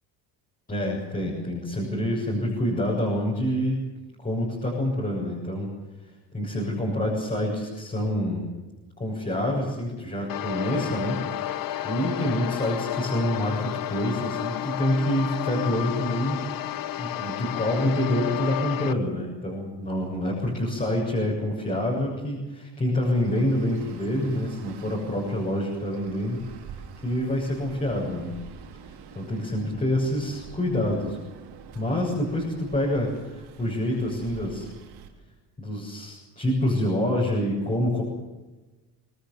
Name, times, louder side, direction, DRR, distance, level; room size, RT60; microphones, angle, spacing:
voice 1, 0.7-3.8 4.2-5.7 6.3-8.5 9.0-16.4 17.0-26.8 27.0-28.4 29.1-31.2 31.7-34.7 35.6-38.0, left 1 dB, 20° left, -4 dB, 7.5 m, -27 dB
sound 1, 10.3-18.9, left 12 dB, 55° left, 1.0 m, -31 dB
Traffic noise roadway noise, 23.0-35.1, right 7 dB, 70° right, 4.3 m, -46 dB
24.5 x 20.0 x 7.2 m, 1.2 s
cardioid pair, 105°, 41 cm